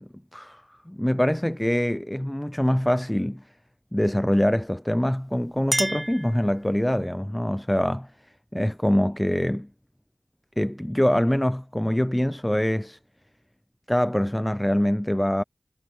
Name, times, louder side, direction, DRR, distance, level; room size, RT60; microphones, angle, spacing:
voice 1, 0.0-3.4 3.9-8.1 8.5-9.7 10.6-13.0 13.9-15.4, equal, 10° left, 0.4 m, -24 dB
Chink clink, 5.1-7.0, right 1 dB, 25° right, 0.8 m, -31 dB
wide cardioid pair, 55°, 0 cm